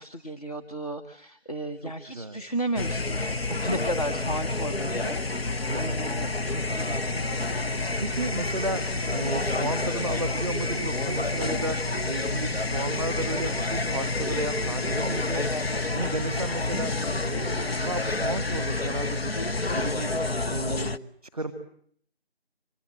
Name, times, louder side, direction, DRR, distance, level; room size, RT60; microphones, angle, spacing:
voice 1, 0.0-8.2 15.3-16.4, right 1 dB, 35° left, 5 dB, 1.5 m, -35 dB
voice 2, 1.8-2.4 5.7-6.0 8.0-8.8 9.1-11.8 12.0-15.5 15.9-16.9 17.2-19.3 19.7-20.1 20.5-20.9 21.3-21.5, right 2 dB, 10° right, 10 dB, 1.3 m, -33 dB
sound 1, 2.8-21.0, left 2 dB, 70° left, 1.0 m, -29 dB
sound 2, 13.5-13.9 14.2-14.9 16.7-17.2 17.8-18.0 18.7-19.0 19.6-19.9, right 1 dB, 10° left, 3.9 m, -47 dB
25.5 x 19.5 x 9.0 m, 0.62 s
figure-of-eight pair, 170°, 32 cm